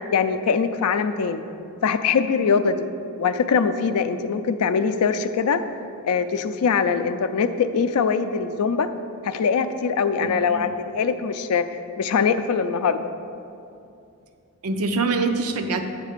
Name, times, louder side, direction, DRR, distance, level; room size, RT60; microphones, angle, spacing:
voice 1, 0.1-1.4 1.8-2.9 3.2-5.6 6.0-8.9 9.2-11.6 12.0-13.0, left 6 dB, 85° left, 10 dB, 0.4 m, -22 dB
voice 2, 10.2-10.7 14.6-15.8, right 3 dB, 75° right, 6 dB, 0.6 m, -25 dB
8.2 x 3.4 x 6.5 m, 2.6 s
head